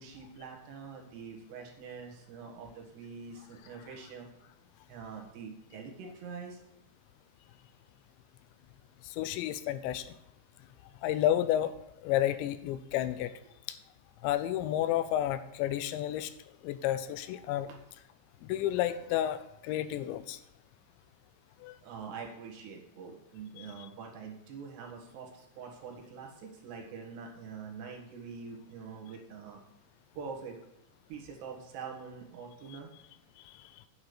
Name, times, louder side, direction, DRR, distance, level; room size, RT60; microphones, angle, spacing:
voice 1, 0.0-4.3 4.9-6.6 17.7-17.8 21.8-29.6 30.2-30.6 31.1-32.9, right 5 dB, 70° right, 1 dB, 3.6 m, -45 dB
voice 2, 9.1-10.1 11.0-11.7 12.0-13.3 13.7-13.8 14.2-16.3 16.6-17.7 18.4-20.4 21.6-21.7 23.6-23.9 32.7-32.8 33.5-33.7, left 12 dB, 85° left, 13 dB, 2.8 m, -31 dB
9.5 x 7.2 x 6.7 m, 0.85 s
omnidirectional pair, 5.3 m